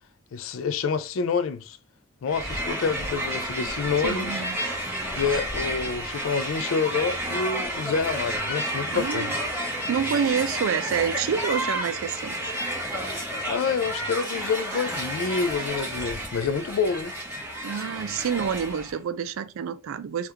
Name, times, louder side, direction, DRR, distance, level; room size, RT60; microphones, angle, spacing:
voice 1, 0.3-1.8 2.2-4.4 5.2-9.3 13.5-17.1, left 5 dB, 70° left, 0.3 m, -27 dB
Crowd, 2.3-19.0, right 1 dB, 5° right, 1.2 m, -31 dB
voice 2, 4.0-4.7 8.9-9.3 9.6-12.5 17.6-20.3, right 7 dB, 75° right, 0.4 m, -28 dB
3.4 x 2.4 x 2.8 m
head